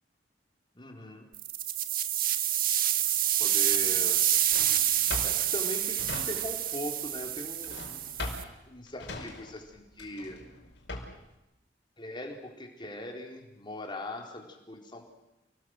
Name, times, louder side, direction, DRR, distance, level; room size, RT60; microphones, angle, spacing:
voice 1, 0.8-1.3 3.4-4.3 5.2-7.8 8.7-10.4 12.0-15.1, left 1 dB, 25° left, 2 dB, 4.1 m, -40 dB
sound 1, 1.3-8.4, right 11 dB, 55° right, 1.5 m, -28 dB
Drawer open or close, 3.7-6.8 7.1-11.3, left 2 dB, 70° left, 5.3 m, -41 dB
29.0 x 20.0 x 7.9 m, 0.92 s
head